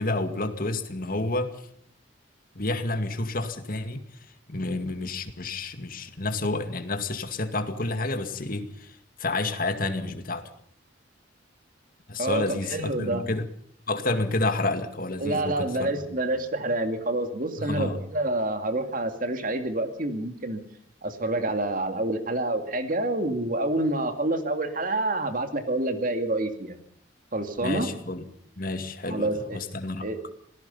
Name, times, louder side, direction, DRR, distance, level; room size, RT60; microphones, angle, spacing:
voice 1, 0.0-1.5 2.6-4.0 4.5-10.5 12.1-13.4 13.9-16.0 17.6-18.0 27.6-28.2 28.6-30.1, left 2 dB, 45° left, 7 dB, 2.2 m, -29 dB
voice 2, 12.2-13.2 15.2-20.6 21.0-26.8 27.3-27.9 29.1-29.6 30.0-30.2, right 2 dB, 45° right, 7 dB, 2.5 m, -27 dB
27.0 x 18.5 x 5.6 m, 0.63 s
head